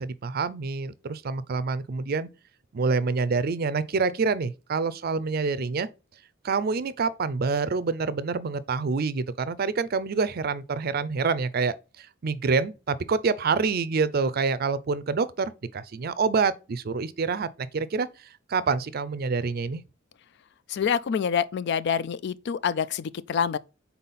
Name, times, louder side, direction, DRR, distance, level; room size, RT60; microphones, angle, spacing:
voice 1, 0.0-2.3 2.7-5.9 6.4-18.1 18.5-19.8, right 4 dB, 50° right, 0.5 m, -27 dB
voice 2, 20.7-23.6, left 7 dB, 60° left, 0.3 m, -26 dB
4.2 x 4.1 x 5.5 m
head